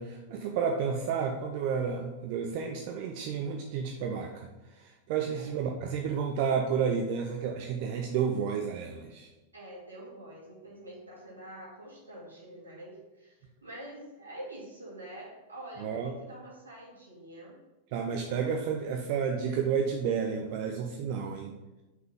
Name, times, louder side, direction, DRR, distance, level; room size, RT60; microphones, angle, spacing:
voice 1, 0.0-4.5 4.8-9.3 15.8-16.1 17.9-21.6, right 6 dB, 45° right, 2 dB, 0.5 m, -31 dB
voice 2, 9.5-17.6 18.2-18.6, right 1 dB, 80° right, -4 dB, 2.0 m, -46 dB
5.5 x 3.8 x 5.2 m, 1.1 s
figure-of-eight pair, 90°, 0 cm